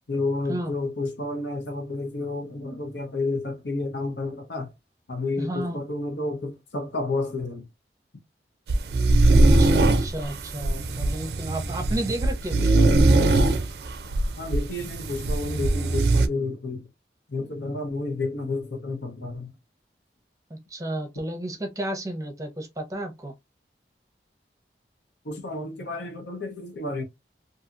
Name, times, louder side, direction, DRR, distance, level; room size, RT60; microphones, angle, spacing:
voice 1, 0.1-4.7 5.1-7.7 14.4-16.9 17.3-19.5 25.2-27.0, left 2 dB, 85° left, 0.9 m, -30 dB
voice 2, 5.4-5.8 9.3-12.9 20.5-23.3, right 1 dB, 20° right, 0.6 m, -32 dB
sound 1, 8.7-16.3, right 2 dB, 70° right, 0.4 m, -21 dB
2.7 x 2.7 x 2.4 m
head